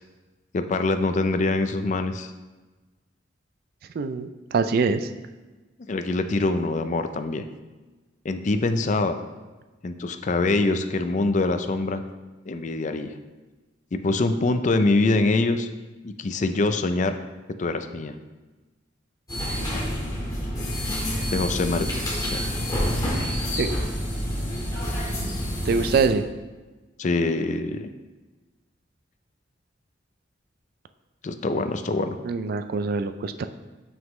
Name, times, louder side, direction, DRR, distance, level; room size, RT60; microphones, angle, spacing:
voice 1, 0.5-2.3 5.9-7.4 8.2-9.2 9.8-12.0 12.5-13.1 13.9-15.7 16.0-17.2 17.6-18.1 21.3-22.0 22.3-22.4 27.0-27.9 31.2-32.2, left 2 dB, 40° left, 8 dB, 0.4 m, -24 dB
voice 2, 4.0-5.1 23.6-23.7 25.6-26.2 32.2-33.5, right 4 dB, 50° right, 9 dB, 0.3 m, -24 dB
sound 1, 19.3-26.1, equal, 20° left, 1.7 m, -28 dB
7.2 x 6.0 x 3.1 m, 1.2 s
head